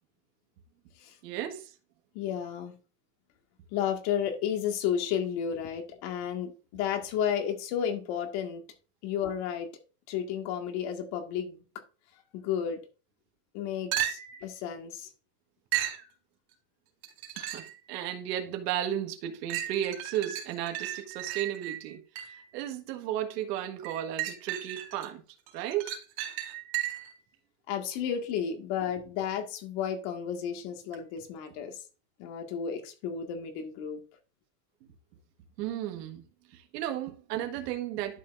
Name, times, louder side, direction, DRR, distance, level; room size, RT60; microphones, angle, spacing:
voice 1, 1.2-1.7 17.4-25.2 25.5-25.9 35.6-36.2 36.5-38.2, right 11 dB, 90° right, 1.6 m, -34 dB
voice 2, 2.1-2.7 3.7-8.6 9.0-9.7 10.1-11.6 12.3-12.8 13.5-15.1 27.7-31.8 32.2-34.0, left 8 dB, 60° left, 1.9 m, -32 dB
sound 1, 13.9-14.5 15.7-16.1 17.0-17.8 18.4-18.5 19.5-22.5 23.8-25.1 25.5-27.2 30.9-31.0, right 12 dB, 55° right, 3.6 m, -35 dB
12.0 x 5.6 x 2.5 m
supercardioid pair, 150°, 46 cm